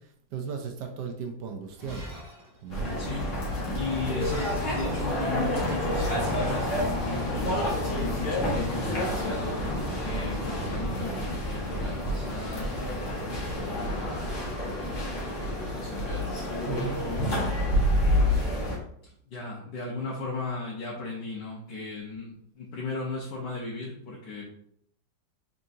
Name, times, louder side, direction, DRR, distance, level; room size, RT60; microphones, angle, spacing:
voice 1, 0.3-2.1 2.6-2.9 16.7-17.0, right 6 dB, 75° right, 4 dB, 1.2 m, -36 dB
Shatter, 1.6-9.7, equal, 25° right, 0.5 m, -48 dB
sound 1, 2.7-18.8, left 1 dB, 45° left, 1.4 m, -29 dB
voice 2, 3.0-3.4 3.7-6.7 7.0-9.6 10.0-14.2 14.6-16.3 16.7-17.6 18.0-18.5 19.3-24.4, left 3 dB, 75° left, -4 dB, 1.5 m, -37 dB
4.2 x 3.6 x 2.6 m, 0.69 s
omnidirectional pair, 1.9 m